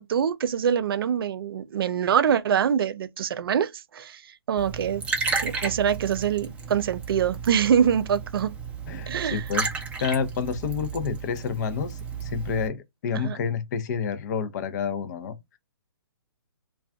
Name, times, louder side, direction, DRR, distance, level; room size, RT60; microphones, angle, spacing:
voice 1, 0.0-4.2 4.5-5.0 5.4-8.5 9.1-9.4 13.1-13.4, right 8 dB, 65° right, 0.4 m, -24 dB
Liquid, 4.6-12.7, right 5 dB, 10° right, 0.5 m, -33 dB
voice 2, 8.9-9.7 10.0-15.6, left 6 dB, 45° left, 0.5 m, -29 dB
2.4 x 2.3 x 3.5 m
hypercardioid pair, 140°, 13 cm